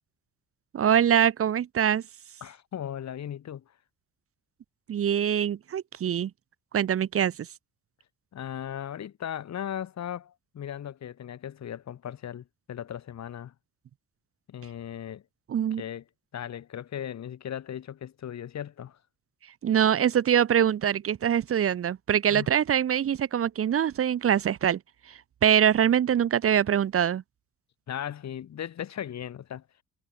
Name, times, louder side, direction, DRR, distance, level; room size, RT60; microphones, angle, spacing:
voice 1, 0.7-2.0 4.9-6.3 6.7-7.5 15.5-15.8 19.6-24.8 25.1-27.2, right 9 dB, 50° right, 0.9 m, -24 dB
voice 2, 2.4-3.6 8.3-13.5 14.5-15.2 15.8-16.0 16.3-19.0 22.3-22.5 27.9-29.6, left 10 dB, 60° left, 5.0 m, -37 dB
cardioid pair, 90°, 30 cm